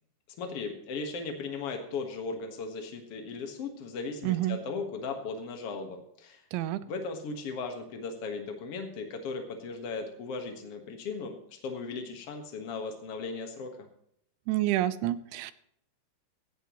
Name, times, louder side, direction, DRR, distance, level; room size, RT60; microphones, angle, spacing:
voice 1, 0.4-6.4 6.9-13.7, left 4 dB, 70° left, 4 dB, 1.4 m, -37 dB
voice 2, 4.2-4.6 6.5-6.8 14.5-15.5, right 15 dB, 85° right, 14 dB, 3.2 m, -28 dB
17.0 x 14.5 x 3.1 m, 0.73 s
omnidirectional pair, 5.2 m